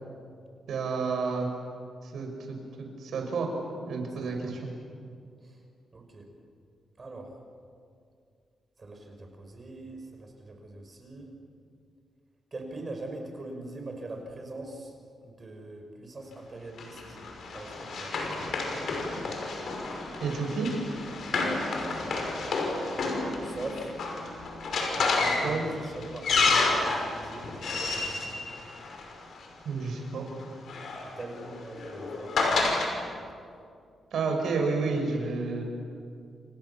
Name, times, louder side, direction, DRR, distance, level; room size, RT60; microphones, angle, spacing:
voice 1, 0.7-1.5 2.0-2.6 3.0-3.5 3.9-4.7 20.2-20.7 25.4-25.6 29.6-30.3 34.1-35.6, right 4 dB, 75° right, 3 dB, 6.2 m, -30 dB
voice 2, 4.2-4.6 5.4-5.6 5.9-6.3 7.0-7.3 8.8-11.3 12.5-14.9 15.2-17.2 17.5-18.2 21.4-22.1 23.4-23.9 24.9-28.5 31.2-32.3, right 2 dB, 30° right, 4 dB, 5.7 m, -42 dB
Run, 16.8-29.4 30.4-32.9, left 3 dB, 65° left, 5.9 m, -30 dB
28.5 x 28.5 x 7.3 m, 2.3 s
cardioid pair, 115°, 0 cm